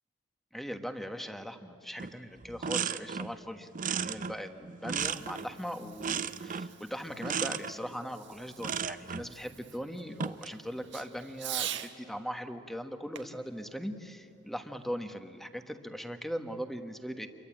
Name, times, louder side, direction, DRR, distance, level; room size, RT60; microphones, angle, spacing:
voice 1, 0.5-17.3, equal, ahead, 7 dB, 1.3 m, -40 dB
sound 1, 2.0-2.2 2.4-3.4 3.7-5.6 6.0-6.8 7.2-7.7 8.6-9.3 10.0-10.5, right 7 dB, 45° right, 0.6 m, -34 dB
Fireworks, 4.7-12.0 13.1-14.8, right 11 dB, 65° right, 1.4 m, -45 dB
28.5 x 23.5 x 8.8 m, 3.0 s
head